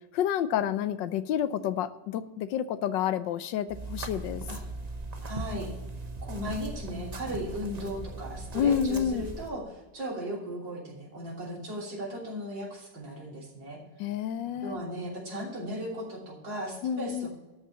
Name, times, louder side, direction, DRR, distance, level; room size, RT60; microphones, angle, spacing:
voice 1, 0.1-4.4 8.5-9.3 14.0-14.8 16.8-17.3, left 9 dB, 85° left, 13 dB, 1.4 m, -29 dB
sound 1, 3.7-9.5, right 2 dB, 35° right, 0.7 m, -39 dB
voice 2, 5.3-5.7 6.2-13.8 14.6-17.3, equal, 85° right, -3 dB, 3.8 m, -37 dB
13.0 x 5.6 x 7.1 m, 1.1 s
omnidirectional pair, 2.0 m